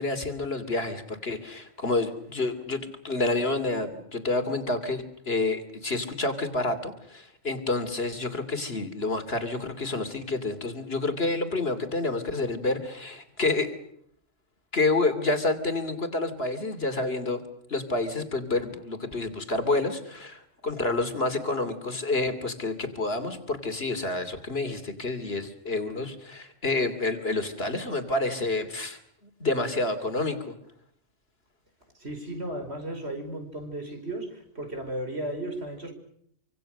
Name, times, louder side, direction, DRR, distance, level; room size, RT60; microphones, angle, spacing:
voice 1, 0.0-13.8 14.7-17.4 17.7-29.0 29.4-30.6, left 2 dB, 50° left, 9 dB, 3.0 m, -29 dB
voice 2, 31.9-35.9, right 1 dB, 55° right, 6 dB, 5.5 m, -35 dB
27.5 x 25.5 x 6.7 m, 0.68 s
omnidirectional pair, 1.3 m